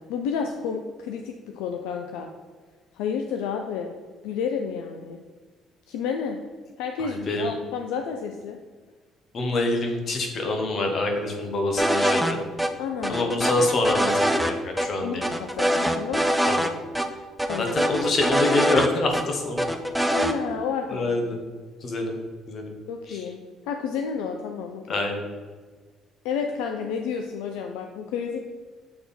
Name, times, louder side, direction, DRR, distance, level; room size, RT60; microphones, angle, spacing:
voice 1, 0.0-2.3 2.9-3.9 4.2-5.2 5.9-6.4 6.8-8.6 12.8-13.3 15.0-16.2 17.5-17.8 20.1-21.1 22.9-23.4 23.7-25.0 26.2-28.5, left 6 dB, 80° left, 4 dB, 0.4 m, -30 dB
voice 2, 7.0-7.5 9.3-12.4 13.1-15.2 16.5-16.7 17.6-19.7 20.9-21.4 21.8-22.2 22.5-22.7 23.1-23.2 24.9-25.3, left 2 dB, 50° left, 3 dB, 1.3 m, -26 dB
sound 1, 11.8-12.3 12.6-12.7 13.0-14.5 14.8-14.9 15.2-16.7 16.9-17.1 17.4-19.2 19.6-20.3, equal, 5° right, 0.7 m, -23 dB
7.7 x 3.5 x 4.2 m, 1.4 s
hypercardioid pair, 55°, 0 cm